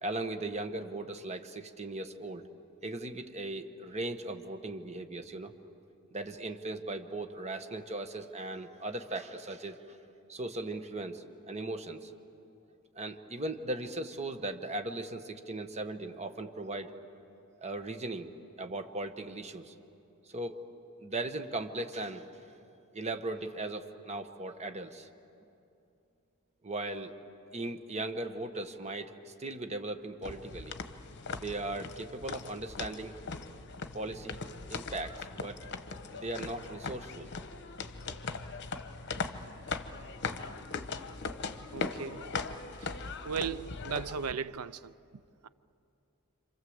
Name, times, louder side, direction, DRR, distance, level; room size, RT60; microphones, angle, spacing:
voice 1, 0.0-2.5 2.8-5.5 6.1-10.0 10.3-12.1 12.9-16.9 17.6-18.3 18.6-19.7 20.3-20.6 21.0-22.2 22.9-25.1 26.6-27.1 27.5-30.7 31.4-33.1 33.9-34.4 34.7-35.6 36.1-37.3 39.1-39.2, right 2 dB, 30° right, 1.3 m, -38 dB
sound 1, 30.2-44.3, left 4 dB, 55° left, 1.1 m, -40 dB
voice 2, 41.7-42.3 42.8-44.9 45.4-45.5, right 6 dB, 75° right, 0.6 m, -37 dB
27.5 x 26.5 x 8.0 m
head